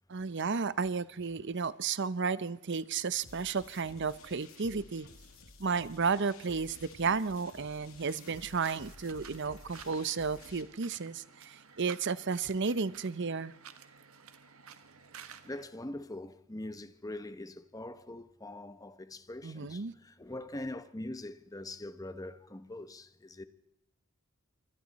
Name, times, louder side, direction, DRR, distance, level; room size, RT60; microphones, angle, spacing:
voice 1, 0.1-5.1 5.6-13.5 19.4-19.9, right 5 dB, 55° right, 0.7 m, -33 dB
sound 1, 3.2-10.6, left 3 dB, 75° left, 2.4 m, -54 dB
sound 2, 8.2-15.7, right 7 dB, 80° right, 1.4 m, -53 dB
voice 2, 15.4-23.5, left 1 dB, 15° left, 1.0 m, -43 dB
26.5 x 24.5 x 4.2 m
head